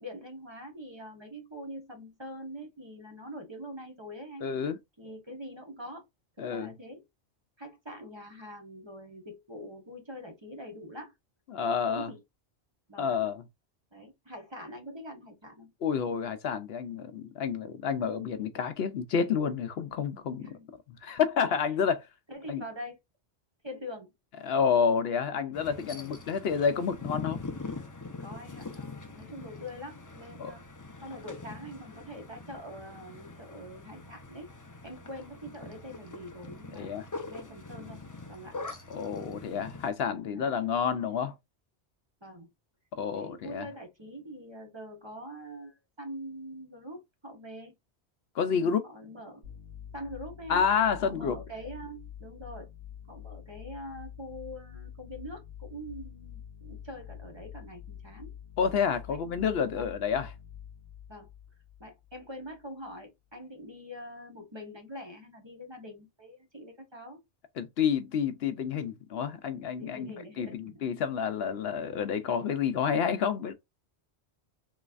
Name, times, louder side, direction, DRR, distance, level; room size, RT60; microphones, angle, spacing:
voice 1, 0.0-4.5 5.0-6.1 6.4-7.0 7.6-11.1 11.6-12.2 12.9-13.2 13.9-15.7 20.4-20.7 22.3-23.0 23.6-24.1 25.7-26.2 28.2-30.6 31.0-34.5 34.8-38.0 38.3-38.6 40.3-40.5 42.2-42.5 43.1-47.7 48.5-49.5 49.9-50.6 51.0-52.7 53.1-58.3 59.1-59.4 59.7-59.9 61.1-61.3 61.8-67.2 69.8-70.8, equal, 25° right, 1.0 m, -44 dB
voice 2, 4.4-4.8 6.4-6.7 11.5-12.1 13.0-13.4 15.8-20.4 21.0-22.1 22.5-22.6 24.4-27.4 30.4-30.5 36.8-37.0 38.9-41.3 42.9-43.7 48.4-48.8 50.5-51.4 58.6-60.3 67.6-70.1 70.4-73.5, left 6 dB, 70° left, 0.8 m, -29 dB
sound 1, 25.5-39.9, left 3 dB, 25° left, 0.4 m, -43 dB
sound 2, 49.4-62.6, left 9 dB, 85° right, 2.0 m, -47 dB
3.9 x 3.1 x 2.4 m
omnidirectional pair, 1.1 m